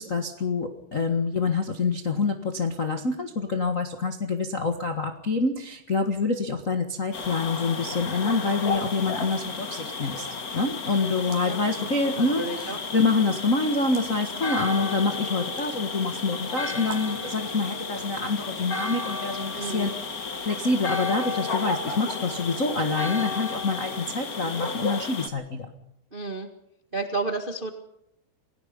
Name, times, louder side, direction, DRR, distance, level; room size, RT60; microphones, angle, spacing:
voice 1, 0.0-10.3 10.5-19.9 20.4-25.7, left 3 dB, 75° left, 4 dB, 0.7 m, -26 dB
sound 1, 7.1-25.3, left 4 dB, 45° left, 1.1 m, -34 dB
sound 2, 11.1-11.6 12.4-13.0 13.8-14.1 15.4-15.8 16.8-17.2, right 8 dB, 85° right, 4.0 m, -43 dB
voice 2, 11.5-12.8 19.5-19.9 26.1-26.5 26.9-27.7, right 3 dB, 60° right, 5 dB, 0.5 m, -32 dB
Church bell, 14.4-24.1, left 3 dB, 30° left, 3.3 m, -36 dB
28.5 x 18.5 x 5.4 m, 0.81 s
omnidirectional pair, 4.4 m